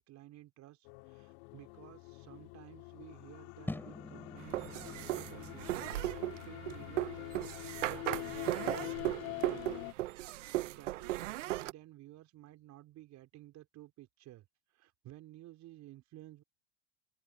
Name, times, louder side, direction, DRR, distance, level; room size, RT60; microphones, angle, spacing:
voice 1, 0.0-8.5 8.8-9.7 10.1-16.4, right 15 dB, 50° right, 4.2 m, -54 dB
sound 1, 0.9-9.9, left 29 dB, 65° left, 2.6 m, -45 dB
sound 2, 3.7-9.9, left 1 dB, 5° left, 4.6 m, -49 dB
sound 3, 4.5-11.7, right 16 dB, 85° right, 0.7 m, -37 dB
open air
hypercardioid pair, 90°, 36 cm